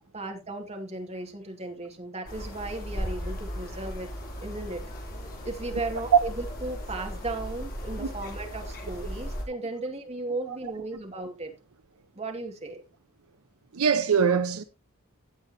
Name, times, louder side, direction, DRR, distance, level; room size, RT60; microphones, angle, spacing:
voice 1, 0.1-4.1 4.4-4.8 5.4-11.5 12.1-12.8, right 2 dB, 30° right, 2.2 m, -36 dB
sound 1, 2.3-9.5, equal, 40° left, 3.7 m, -37 dB
voice 2, 13.7-14.6, right 6 dB, 75° right, 0.7 m, -23 dB
16.0 x 7.3 x 2.8 m
head